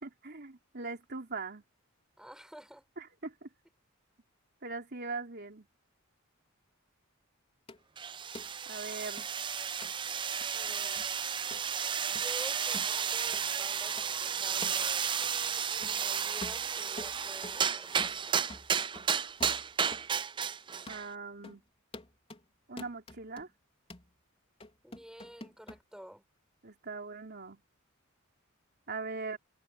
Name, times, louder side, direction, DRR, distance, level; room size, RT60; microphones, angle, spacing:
voice 1, 0.0-1.6 3.0-3.5 4.6-5.7 8.6-9.3 20.9-21.6 22.7-23.5 26.6-27.6 28.9-29.4, right 3 dB, 50° right, 3.4 m, -41 dB
voice 2, 2.2-2.8 10.5-11.0 12.1-15.4 15.7-18.5 24.8-26.2, equal, 5° right, 7.8 m, -50 dB
sound 1, 7.7-7.8 8.3-8.5 9.2-9.3 9.8-9.9 10.4-10.5 11.0-11.1 11.5-11.7 12.1-12.3 12.7-12.9 13.3-13.5 14.0-14.1 14.6-14.8 15.2-15.3 15.8-16.0 16.4-17.6 18.0-18.2 18.5-20.1 20.4-20.5 20.9-21.0 21.4-21.6 21.9-22.4 22.8-23.5 23.9-24.1 24.6-25.8, left 2 dB, 30° left, 4.2 m, -47 dB
sound 2, 8.0-21.1, right 7 dB, 25° right, 0.4 m, -33 dB
open air
head